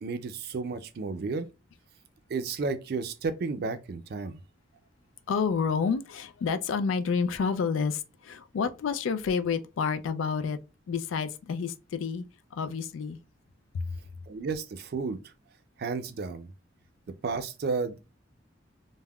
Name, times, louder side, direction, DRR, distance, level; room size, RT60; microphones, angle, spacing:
voice 1, 0.0-1.5 2.3-4.4 14.3-15.2 15.8-16.5 17.2-18.0, right 4 dB, 55° right, 0.4 m, -32 dB
voice 2, 5.3-10.6 10.9-12.2 12.5-13.2 13.7-13.9, left 5 dB, 85° left, 0.3 m, -29 dB
3.4 x 2.1 x 2.2 m
head